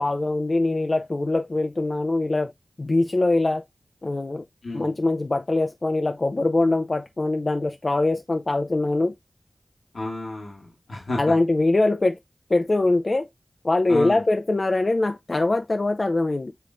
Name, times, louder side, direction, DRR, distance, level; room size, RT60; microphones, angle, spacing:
voice 1, 0.0-2.5 2.8-3.6 4.0-4.4 4.7-9.1 11.2-12.2 12.5-13.3 13.6-16.5, left 2 dB, 50° left, 0.3 m, -22 dB
voice 2, 4.6-4.9 9.9-11.3 13.9-14.2, left 2 dB, 80° left, 1.1 m, -31 dB
6.7 x 3.1 x 2.5 m
cardioid pair, 45°, 0 cm